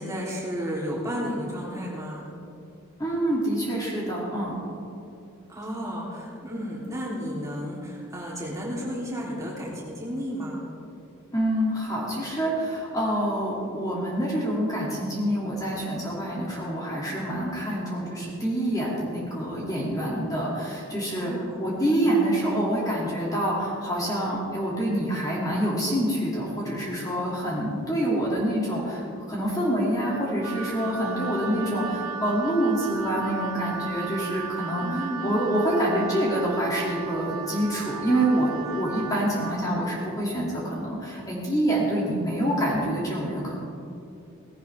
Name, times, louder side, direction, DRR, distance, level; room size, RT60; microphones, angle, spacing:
voice 1, 0.0-2.3 5.5-10.6 21.2-22.0 34.8-35.4 39.2-39.6, equal, 15° right, -6 dB, 3.4 m, -33 dB
voice 2, 3.0-4.6 11.3-38.5 38.7-43.6, right 1 dB, 15° left, -5 dB, 2.7 m, -26 dB
Wind instrument woodwind instrument, 30.4-39.6, right 7 dB, 90° right, 1.7 m, -35 dB
18.5 x 17.0 x 3.6 m, 2.6 s
head